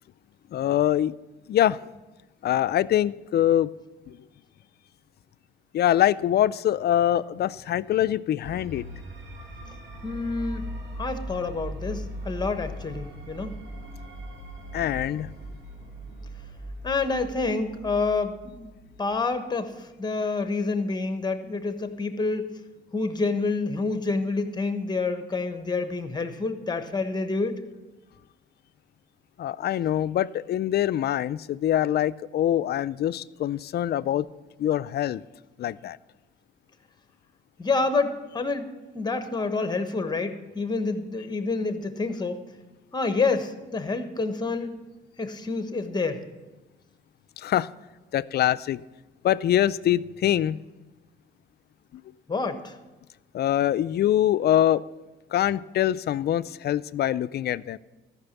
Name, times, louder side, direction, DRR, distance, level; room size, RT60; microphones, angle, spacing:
voice 1, 0.5-1.1 1.5-1.8 2.4-3.7 4.1-4.2 5.7-8.9 14.7-15.3 29.4-34.3 34.6-35.2 35.6-36.0 47.4-47.7 48.1-48.8 49.2-50.6 53.3-54.8 55.3-57.8, left 12 dB, 55° left, 16 dB, 0.4 m, -24 dB
sound 1, 8.4-19.4, equal, 65° right, 2.3 m, -39 dB
voice 2, 10.0-10.7 11.0-13.6 16.8-18.7 19.0-22.5 22.9-27.6 37.6-42.4 42.9-44.8 45.2-46.3 52.3-52.7, left 3 dB, 20° left, 8 dB, 1.1 m, -28 dB
13.5 x 6.0 x 7.0 m, 1.1 s
cardioid pair, 90°, 20 cm